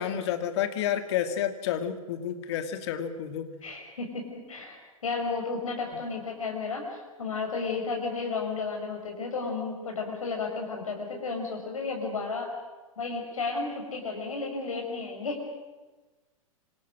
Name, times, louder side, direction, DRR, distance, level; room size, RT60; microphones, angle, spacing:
voice 1, 0.0-3.5, left 9 dB, 50° left, 8 dB, 2.5 m, -30 dB
voice 2, 3.6-12.5 13.0-15.4, left 4 dB, 70° left, 2 dB, 5.9 m, -33 dB
26.5 x 26.0 x 6.3 m, 1.2 s
figure-of-eight pair, 105°, 18 cm